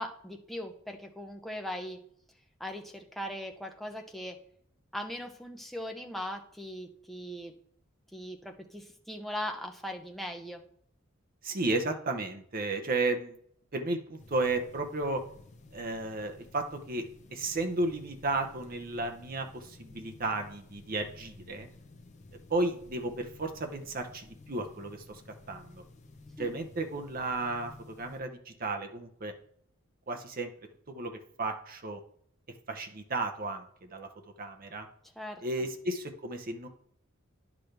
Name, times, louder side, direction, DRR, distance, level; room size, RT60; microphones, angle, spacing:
voice 1, 0.0-2.0 2.6-4.4 4.9-7.5 8.1-10.6 26.4-26.5 35.2-35.4, equal, ahead, 3 dB, 0.7 m, -39 dB
voice 2, 11.4-13.3 13.7-15.2 15.7-21.7 22.5-25.2 25.5-25.8 26.4-27.7 28.0-29.3 30.1-30.5 30.9-32.0 32.7-34.1 34.4-34.9 35.4-36.7, right 2 dB, 45° right, 5 dB, 0.8 m, -33 dB
sound 1, 14.2-28.2, left 2 dB, 35° left, 0.7 m, -53 dB
10.0 x 6.1 x 3.3 m, 0.65 s
head